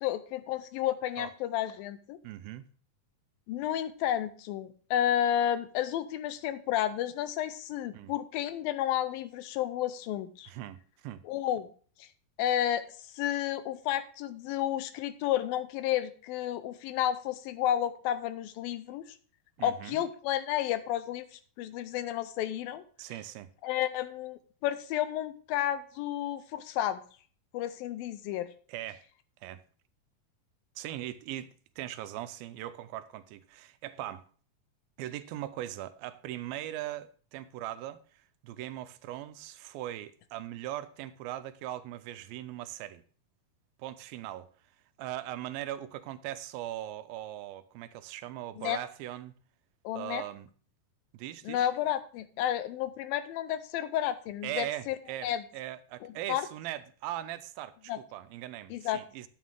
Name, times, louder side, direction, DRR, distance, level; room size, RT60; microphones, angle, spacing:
voice 1, 0.0-2.2 3.5-10.5 11.2-11.7 12.0-12.1 12.4-19.1 19.6-22.8 23.6-27.0 27.5-28.5 48.6-48.8 49.8-50.2 51.5-55.0 55.2-55.4 56.0-56.5 57.9-58.0 58.7-59.0, left 11 dB, 80° left, 2.4 m, -31 dB
voice 2, 2.2-2.7 7.9-8.1 10.5-11.2 19.6-20.0 23.0-23.5 28.7-29.1 29.4-29.6 30.8-34.3 35.0-43.0 43.8-44.5 45.0-49.3 49.9-50.5 51.1-51.7 54.4-59.3, right 13 dB, 85° right, 2.4 m, -40 dB
9.5 x 9.1 x 3.7 m
omnidirectional pair, 4.2 m